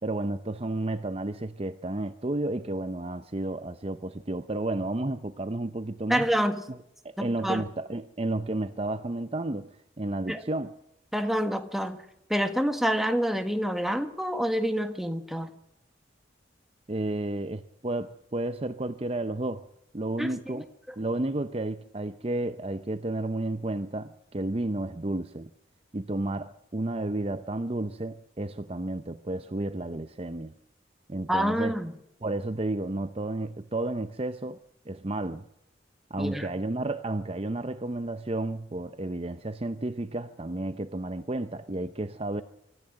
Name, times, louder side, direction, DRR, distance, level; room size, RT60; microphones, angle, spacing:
voice 1, 0.0-6.3 6.7-6.8 7.0-10.7 16.9-19.6 19.9-20.6 21.0-25.5 25.9-30.5 31.1-31.8 32.2-34.6 34.9-35.4 36.1-42.4, right 2 dB, 30° right, 0.7 m, -32 dB
voice 2, 6.1-6.6 7.2-7.6 10.3-10.4 11.1-12.0 12.3-15.5 20.2-20.6 31.3-31.9 36.2-36.5, equal, ahead, 1.6 m, -27 dB
24.5 x 14.5 x 7.8 m
head